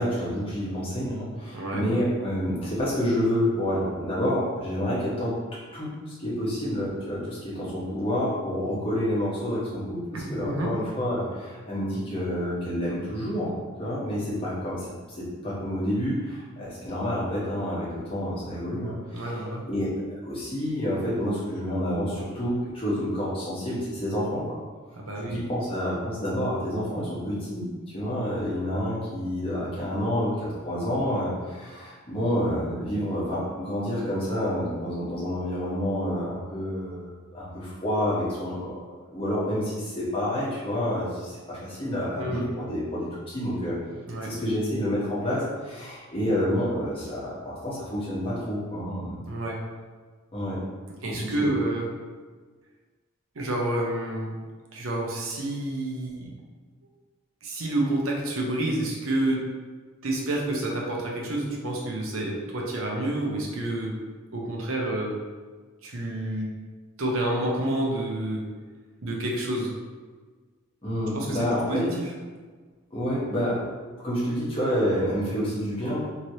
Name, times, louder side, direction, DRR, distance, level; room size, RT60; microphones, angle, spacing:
voice 1, 0.0-5.3 5.7-13.5 13.8-19.4 19.7-19.9 20.2-24.5 25.2-27.7 27.9-38.8 39.1-43.7 44.2-49.2 50.3-50.6 51.2-51.5 70.8-71.8 72.9-73.6 74.0-76.0, equal, 25° left, -8 dB, 1.0 m, -28 dB
voice 2, 1.5-1.8 10.1-10.7 19.1-19.7 24.9-25.4 42.1-42.5 44.1-44.3 49.3-49.6 51.0-51.9 53.3-54.4 54.7-56.3 57.4-59.5 60.0-64.0 64.3-65.1 65.8-66.6 67.0-68.5 69.0-69.7 71.1-72.1, right 1 dB, 75° right, -1 dB, 0.7 m, -29 dB
3.1 x 2.9 x 2.7 m, 1.4 s
head